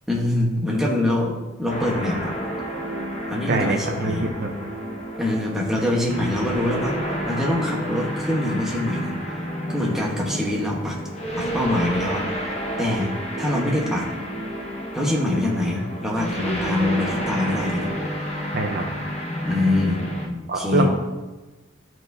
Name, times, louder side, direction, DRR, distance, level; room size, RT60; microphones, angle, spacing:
voice 1, 0.1-2.3 3.3-4.3 5.2-7.0 7.3-9.2 9.7-11.0 11.4-13.1 13.4-14.1 14.9-17.9 19.4-20.9, left 1 dB, ahead, -3 dB, 1.0 m, -24 dB
sound 1, 1.7-20.3, equal, 30° left, 0.9 m, -30 dB
voice 2, 3.5-4.5 18.5-18.8 20.5-20.9, right 2 dB, 50° right, 2 dB, 0.7 m, -23 dB
12.0 x 4.5 x 2.7 m, 1.2 s
head